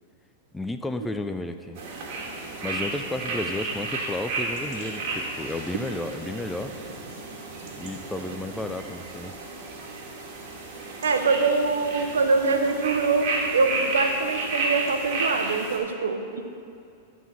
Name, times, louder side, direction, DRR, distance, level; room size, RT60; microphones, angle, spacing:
voice 1, 0.5-1.8 2.6-6.7 7.8-9.3, left 2 dB, 10° left, 8 dB, 0.4 m, -32 dB
sound 1, 1.8-15.8, right 3 dB, 55° right, 1.7 m, -32 dB
voice 2, 11.0-16.4, right 4 dB, 90° right, 6 dB, 0.7 m, -24 dB
11.5 x 4.1 x 6.0 m, 2.5 s
hypercardioid pair, 115°, 0 cm